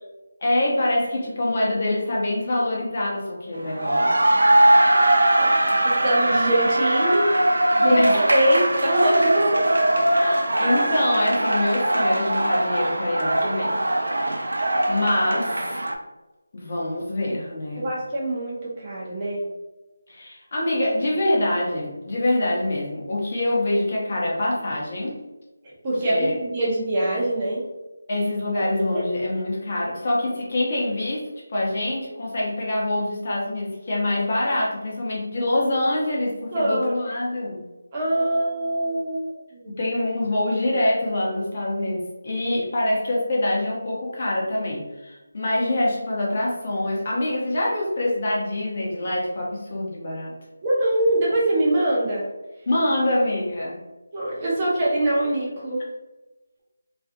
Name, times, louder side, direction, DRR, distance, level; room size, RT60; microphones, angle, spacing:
voice 1, 0.4-4.8 7.8-8.3 10.1-13.8 14.2-14.5 14.9-15.8 16.5-17.9 20.1-25.2 26.1-26.3 28.1-37.6 39.8-50.3 52.7-53.8, left 1 dB, 40° left, -4 dB, 0.8 m, -25 dB
sound 1, 3.6-15.9, right 1 dB, 80° right, 0.4 m, -20 dB
voice 2, 5.8-7.3 7.8-8.0 8.3-9.6 17.8-19.4 25.8-27.6 28.9-29.0 36.5-36.9 37.9-39.2 39.5-39.8 50.6-52.3 54.1-55.9, right 1 dB, 25° right, -6 dB, 0.5 m, -23 dB
2.4 x 2.3 x 2.5 m, 1.1 s
figure-of-eight pair, 170°, 0 cm